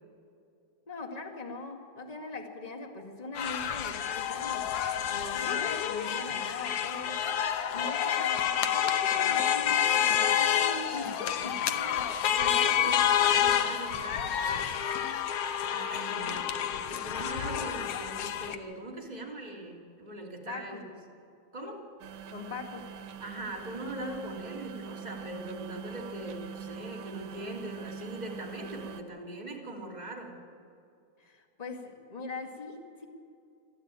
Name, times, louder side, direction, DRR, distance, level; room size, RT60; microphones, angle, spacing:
voice 1, 0.9-7.3 7.7-13.1 16.0-16.4 20.5-20.8 22.3-22.9 31.2-33.1, left 3 dB, 15° left, 3 dB, 1.4 m, -41 dB
sound 1, 3.4-18.6, left 9 dB, 65° left, 1.7 m, -28 dB
voice 2, 12.3-14.7 15.7-20.8 21.5-21.8 23.2-30.3, right 1 dB, 15° right, -1 dB, 2.5 m, -41 dB
sound 2, 22.0-29.0, right 7 dB, 75° right, 2.5 m, -43 dB
25.0 x 14.5 x 9.0 m, 2.5 s
omnidirectional pair, 3.4 m